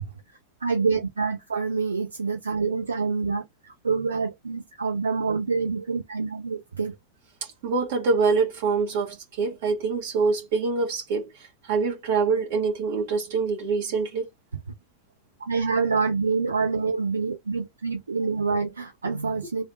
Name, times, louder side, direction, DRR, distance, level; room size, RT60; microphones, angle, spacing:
voice 1, 0.6-7.0 15.4-19.6, right 4 dB, 75° right, 0.4 m, -26 dB
voice 2, 7.4-11.3 11.6-14.3 19.0-19.3, right 4 dB, 50° right, 1.6 m, -25 dB
3.3 x 2.4 x 4.1 m
figure-of-eight pair, 90°, 0 cm